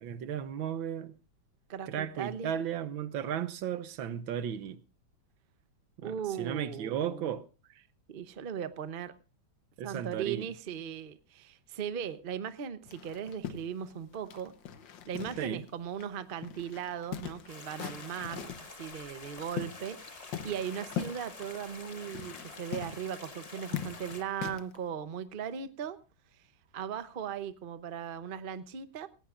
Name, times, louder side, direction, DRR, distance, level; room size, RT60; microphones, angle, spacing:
voice 1, 0.0-1.1 1.9-4.8 6.0-7.4 9.8-10.5 15.4-15.6, right 9 dB, 85° right, 1.6 m, -35 dB
voice 2, 1.7-2.5 6.0-7.4 8.1-9.1 9.8-14.5 15.1-26.0 26.7-29.1, right 8 dB, 50° right, 0.6 m, -38 dB
sound 1, 12.9-15.7 16.0-16.1 16.4-18.7 19.2-20.0 20.3-24.8, left 9 dB, 70° left, 1.7 m, -41 dB
sound 2, 17.5-24.2, left 4 dB, 30° left, 0.7 m, -48 dB
18.5 x 16.5 x 2.5 m
omnidirectional pair, 2.1 m